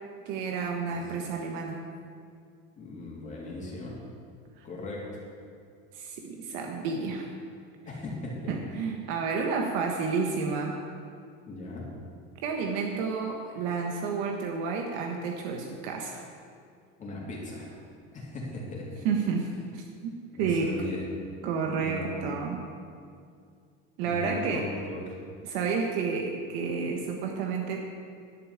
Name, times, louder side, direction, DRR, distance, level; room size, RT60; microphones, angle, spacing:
voice 1, 0.2-1.8 4.6-4.7 5.9-7.3 8.5-10.8 12.4-16.2 19.0-20.7 21.4-22.7 24.0-24.7 25.4-27.8, right 5 dB, 75° right, 2 dB, 1.4 m, -30 dB
voice 2, 2.8-4.0 4.6-5.1 7.8-8.5 11.5-11.8 17.0-17.7 18.1-19.1 20.4-21.1 21.7-22.3 24.0-25.0, left 2 dB, 25° left, -4 dB, 3.0 m, -38 dB
11.0 x 7.1 x 8.5 m, 2.3 s
cardioid pair, 150°, 30 cm